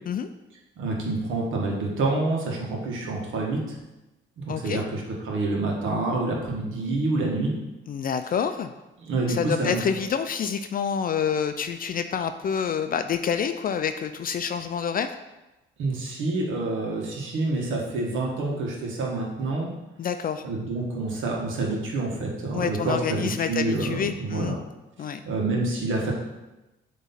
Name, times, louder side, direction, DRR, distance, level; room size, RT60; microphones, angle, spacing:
voice 1, 0.8-3.8 4.4-7.5 9.0-9.8 15.8-19.7 20.4-24.6 25.2-26.1, right 2 dB, 80° right, -1 dB, 1.4 m, -27 dB
voice 2, 4.5-4.8 7.9-8.7 9.3-15.2 20.0-20.4 22.5-24.6 25.0-25.2, left 7 dB, 45° left, 9 dB, 0.4 m, -27 dB
7.7 x 3.1 x 4.2 m, 1.0 s
cardioid pair, 90°, 20 cm